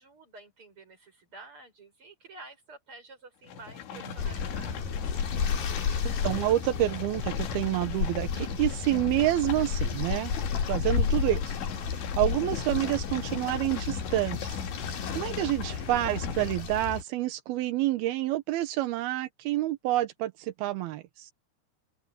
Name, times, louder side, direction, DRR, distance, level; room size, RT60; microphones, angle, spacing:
voice 1, 0.0-5.1, right 3 dB, 25° right, 8.3 m, -50 dB
sound 1, 3.5-16.5, left 7 dB, 70° left, 4.1 m, -40 dB
sound 2, 4.2-17.0, left 6 dB, 55° left, 4.5 m, -32 dB
voice 2, 6.0-10.3 10.7-11.6 11.8-14.6 14.9-21.3, right 15 dB, 75° right, 2.3 m, -28 dB
open air
omnidirectional pair, 5.6 m